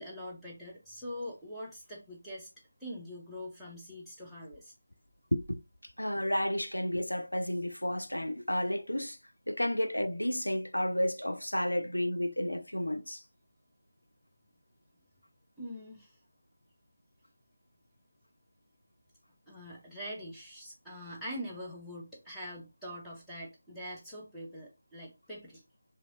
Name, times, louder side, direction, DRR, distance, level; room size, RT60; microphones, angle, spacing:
voice 1, 0.0-2.5 2.8-4.7 15.6-16.2 19.5-25.6, equal, ahead, 0.7 m, -43 dB
voice 2, 5.3-9.2 9.5-13.2, left 1 dB, 80° left, 0.5 m, -32 dB
3.1 x 2.6 x 2.5 m
figure-of-eight pair, 160°, 0 cm